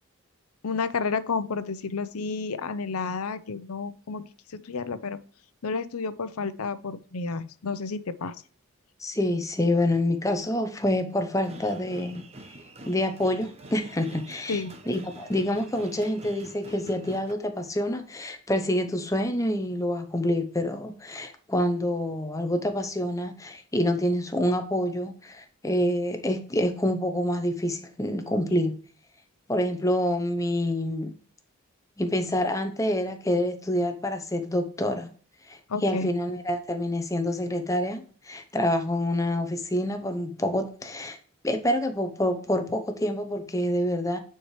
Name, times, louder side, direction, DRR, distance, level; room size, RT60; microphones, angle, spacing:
voice 1, 0.6-4.2 4.5-5.2 5.6-8.4 14.5-14.7 35.7-36.1, left 4 dB, 90° left, 0.7 m, -31 dB
voice 2, 9.0-12.3 12.9-28.8 29.5-31.1 32.0-35.1 35.5-41.2 41.4-44.2, left 1 dB, 15° left, 0.7 m, -27 dB
sound 1, 11.4-17.3, right 1 dB, 30° right, 0.8 m, -46 dB
9.4 x 4.6 x 3.2 m
head